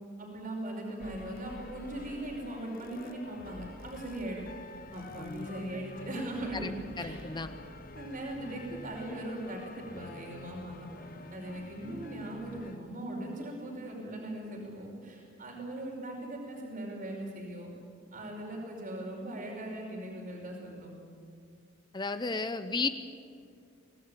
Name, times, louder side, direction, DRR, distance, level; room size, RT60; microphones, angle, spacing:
voice 1, 0.2-4.4 4.9-7.2 7.9-10.9 11.3-17.7 18.1-20.9, right 1 dB, 45° right, 0 dB, 5.2 m, -39 dB
sound 1, 1.0-12.8, left 2 dB, 45° left, 1.2 m, -47 dB
voice 2, 7.0-7.5 21.9-22.9, left 3 dB, 25° left, 10 dB, 0.8 m, -33 dB
25.0 x 18.0 x 9.0 m, 2.3 s
head